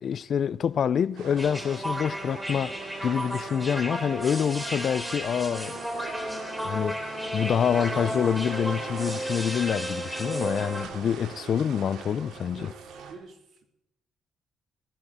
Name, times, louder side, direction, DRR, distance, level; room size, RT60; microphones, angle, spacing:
voice 1, 0.0-2.8 3.0-5.8 6.6-12.7, left 8 dB, 55° left, 0.4 m, -27 dB
sound 1, 1.2-13.1, right 7 dB, 85° right, 2.5 m, -42 dB
sound 2, 1.4-10.9, equal, 5° right, 3.2 m, -33 dB
voice 2, 12.5-13.7, right 4 dB, 65° right, 3.4 m, -48 dB
18.0 x 15.0 x 4.2 m
cardioid pair, 90°, 0 cm